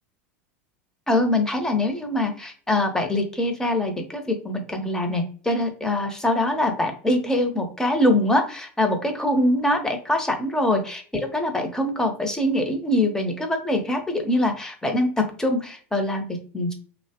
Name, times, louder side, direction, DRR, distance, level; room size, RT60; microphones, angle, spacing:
voice 1, 1.1-16.7, left 1 dB, 10° left, 4 dB, 0.8 m, -23 dB
3.1 x 2.1 x 2.8 m, 0.42 s
hypercardioid pair, 90°, 7 cm